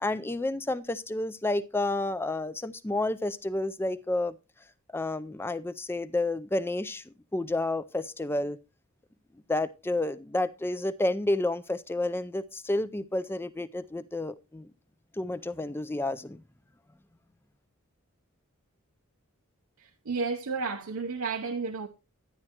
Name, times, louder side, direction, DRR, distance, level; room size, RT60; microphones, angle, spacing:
voice 1, 0.0-4.4 4.9-8.6 9.5-14.7 15.2-16.4, left 2 dB, 10° left, 0.4 m, -30 dB
voice 2, 19.8-21.9, right 4 dB, 70° right, 0.7 m, -32 dB
12.0 x 9.8 x 2.9 m
head